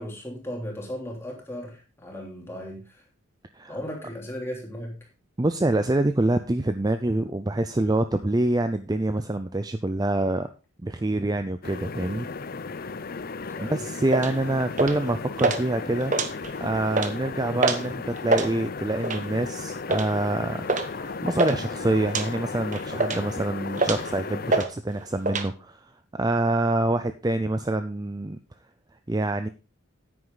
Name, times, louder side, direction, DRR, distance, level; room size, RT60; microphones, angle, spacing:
voice 1, 0.0-3.0 3.7-5.1 13.5-13.8, equal, 10° left, -1 dB, 3.1 m, -36 dB
voice 2, 5.4-10.5 10.8-12.3 13.7-16.1 16.6-25.8 26.1-28.4 29.1-29.5, right 2 dB, 20° right, 9 dB, 0.5 m, -26 dB
sound 1, 11.6-24.6, left 4 dB, 45° left, 0.6 m, -35 dB
sound 2, 14.1-14.3 14.8-15.1 15.4-15.6 16.0-16.6 16.9-17.1 17.6-17.9 18.2-18.5 19.0-19.3 19.9-20.1 20.7-20.9 21.1-21.6 22.1-22.3 22.7-23.3 23.8-24.1 24.5-24.7 24.9-25.5, right 3 dB, 35° right, 1.0 m, -25 dB
9.6 x 9.6 x 3.9 m, 0.31 s
head